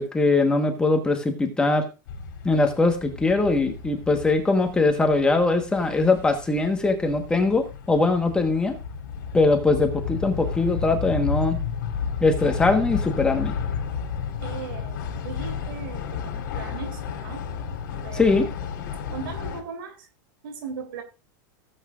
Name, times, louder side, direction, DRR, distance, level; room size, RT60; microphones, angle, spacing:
voice 1, 0.0-1.9 2.4-8.7 9.3-11.6 12.2-13.5 18.1-18.5, left 3 dB, 10° left, 1.3 m, -21 dB
sound 1, 2.1-19.6, left 7 dB, 70° left, 3.5 m, -32 dB
voice 2, 14.4-17.4 18.0-18.3 19.1-20.1 20.4-21.0, right 6 dB, 80° right, 3.4 m, -38 dB
16.5 x 8.2 x 2.5 m
supercardioid pair, 155°, 11 cm